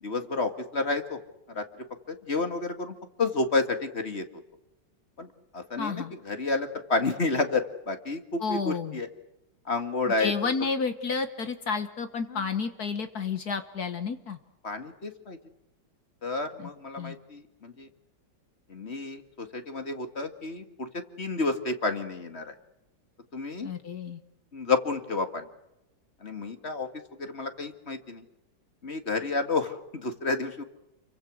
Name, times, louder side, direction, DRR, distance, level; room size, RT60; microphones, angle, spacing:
voice 1, 0.0-1.2 1.5-1.6 2.1-4.3 5.2-5.3 5.5-9.1 9.7-10.5 12.3-12.4 14.6-15.4 16.2-17.9 18.7-22.5 23.3-23.7 24.5-25.5 26.2-26.9 27.2-28.2 28.8-30.6, left 3 dB, 35° left, 8 dB, 2.3 m, -30 dB
voice 2, 5.8-6.1 8.4-9.0 10.2-14.4 16.6-16.7 17.0-17.2 23.6-24.2, left 5 dB, 60° left, 9 dB, 1.8 m, -31 dB
29.5 x 24.0 x 6.4 m, 0.90 s
omnidirectional pair, 1.9 m